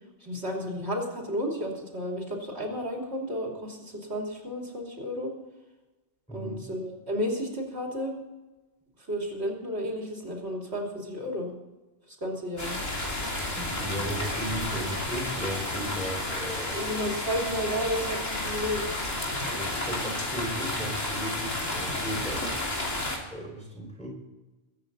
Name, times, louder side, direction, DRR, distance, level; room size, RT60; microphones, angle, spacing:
voice 1, 0.2-5.3 6.3-8.1 9.1-11.5 12.2-12.8 14.2-14.3 16.7-18.8, equal, 55° right, -1 dB, 3.3 m, -32 dB
voice 2, 6.3-6.6 13.5-16.9 19.5-22.6 23.2-24.1, equal, 5° left, 0 dB, 5.0 m, -36 dB
sound 1, 12.6-23.2, left 1 dB, 85° left, 3.3 m, -31 dB
sound 2, 12.6-17.8, left 1 dB, 35° right, 2.6 m, -45 dB
22.0 x 9.2 x 4.0 m, 1.1 s
omnidirectional pair, 1.3 m